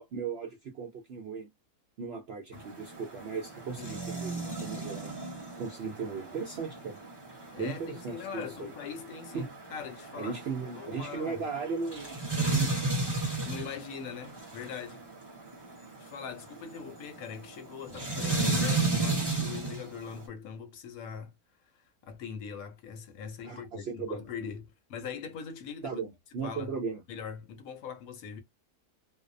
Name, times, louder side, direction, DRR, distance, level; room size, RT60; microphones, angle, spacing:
voice 1, 0.0-1.5 2.0-5.1 5.6-7.0 7.6-8.7 9.3-9.5 10.2-12.2 12.5-12.7 16.9-17.0 23.4-24.3 25.8-27.0, right 5 dB, 65° right, 0.6 m, -37 dB
sound 1, 2.5-20.2, right 3 dB, 20° right, 0.8 m, -34 dB
voice 2, 7.5-11.4 13.4-15.0 16.0-21.3 21.7-26.0 26.4-26.7 27.1-28.4, left 7 dB, 70° left, 1.0 m, -42 dB
2.6 x 2.0 x 2.4 m
omnidirectional pair, 1.6 m